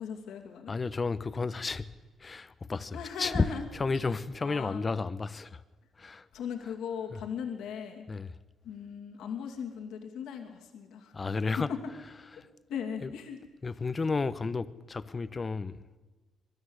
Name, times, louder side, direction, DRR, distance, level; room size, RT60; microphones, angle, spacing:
voice 1, 0.0-0.7 2.9-3.7 4.4-4.8 6.3-8.1 8.6-11.1 11.6-11.8 12.4-12.5 12.7-13.4, left 7 dB, 75° left, 2.5 m, -38 dB
voice 2, 0.7-1.9 2.2-3.5 3.7-5.6 6.0-6.3 7.1-7.2 8.1-8.3 11.1-11.7 12.4-12.5 13.0-13.1 13.6-15.9, left 4 dB, 35° left, 1.1 m, -32 dB
23.0 x 13.0 x 9.8 m
hypercardioid pair, 50°, 0 cm